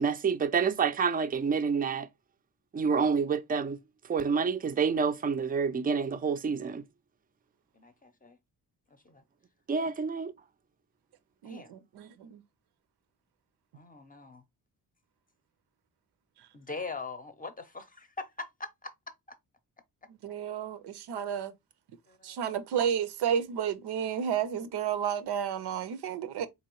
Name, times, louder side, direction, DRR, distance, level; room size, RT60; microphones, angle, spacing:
voice 1, 0.0-2.1 2.7-3.8 4.1-6.8 9.7-10.3, right 5 dB, 25° right, 0.4 m, -28 dB
voice 2, 7.7-8.4 8.9-9.2 11.4-11.7 13.7-14.4 16.5-18.9 22.1-22.4, left 3 dB, 20° left, 0.6 m, -42 dB
voice 3, 11.4-12.4 20.1-21.5 22.2-26.5, right 8 dB, 90° right, 0.6 m, -32 dB
3.9 x 2.8 x 3.0 m
cardioid pair, 80°, 39 cm